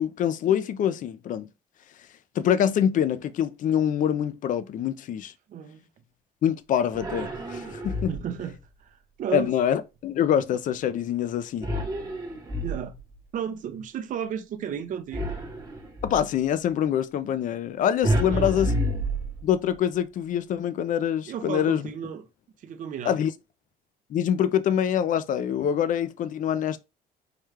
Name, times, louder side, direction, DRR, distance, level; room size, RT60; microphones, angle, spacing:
voice 1, 0.0-1.5 2.4-5.3 6.4-8.1 9.3-11.7 16.0-18.7 19.4-21.8 23.1-23.3 24.1-26.8, left 9 dB, 50° left, 0.5 m, -25 dB
voice 2, 5.5-5.8 8.1-9.5 12.6-13.0 13.3-15.3 18.2-18.6 21.3-22.3 22.6-23.2, right 8 dB, 50° right, 0.6 m, -33 dB
sound 1, 6.9-8.4 11.6-13.2 15.1-16.3 18.0-19.7, equal, 20° right, 0.9 m, -29 dB
4.7 x 2.3 x 3.2 m
cardioid pair, 110°, 17 cm